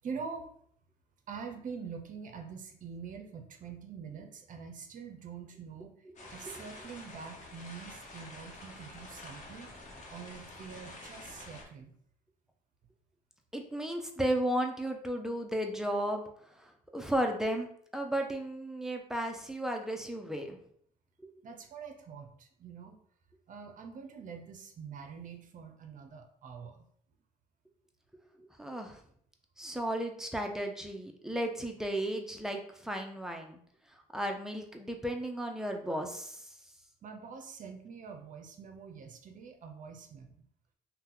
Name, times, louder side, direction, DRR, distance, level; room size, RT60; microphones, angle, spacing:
voice 1, 0.0-0.5 1.3-5.9 6.3-9.7 10.1-11.9 21.4-22.9 23.5-26.8 37.0-40.3, right 6 dB, 50° right, 5 dB, 0.6 m, -45 dB
sound 1, 6.2-11.6, left 2 dB, 50° left, 0.9 m, -48 dB
voice 2, 13.5-16.2 16.6-17.7 17.9-20.6 28.6-29.0 29.6-33.6 34.1-36.5, right 1 dB, 5° right, 3 dB, 0.5 m, -34 dB
2.8 x 2.2 x 3.6 m, 0.64 s
supercardioid pair, 80°, 17 cm